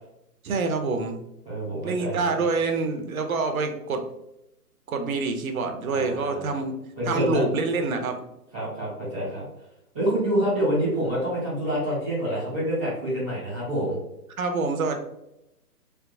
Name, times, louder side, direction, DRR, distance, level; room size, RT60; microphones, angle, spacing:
voice 1, 0.4-1.2 1.8-4.0 4.9-6.8 7.1-8.2 14.4-15.0, right 4 dB, 60° right, 5 dB, 0.7 m, -26 dB
voice 2, 1.4-2.5 5.9-6.6 7.0-7.4 8.5-9.5 9.9-14.0, equal, 5° left, -19 dB, 0.5 m, -27 dB
3.4 x 2.8 x 2.6 m, 0.86 s
hypercardioid pair, 145°, 47 cm